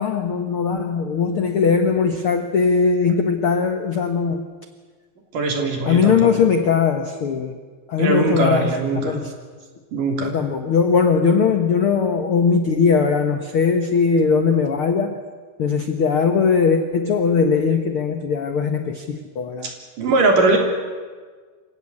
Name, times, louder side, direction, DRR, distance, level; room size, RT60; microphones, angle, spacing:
voice 1, 0.0-4.4 5.9-7.5 7.9-8.7 9.0-9.2 10.2-15.2 15.6-19.7, left 5 dB, 70° left, 7 dB, 1.3 m, -19 dB
voice 2, 5.3-6.4 8.0-9.2 9.9-10.3 19.6-19.7 20.0-20.6, right 3 dB, 60° right, 2 dB, 4.8 m, -20 dB
27.5 x 16.0 x 9.8 m, 1.5 s
omnidirectional pair, 4.4 m